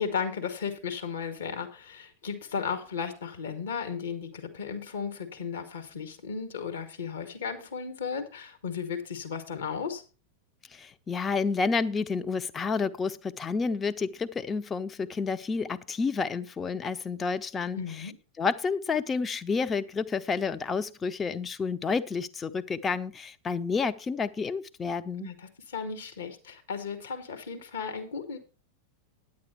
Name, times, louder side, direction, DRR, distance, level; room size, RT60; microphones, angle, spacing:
voice 1, 0.0-10.0 17.7-18.1 25.2-28.4, left 6 dB, 65° left, 1.7 m, -35 dB
voice 2, 10.7-17.8 18.4-25.3, left 5 dB, 20° left, 0.6 m, -30 dB
9.8 x 8.5 x 4.4 m
figure-of-eight pair, 90°, 0 cm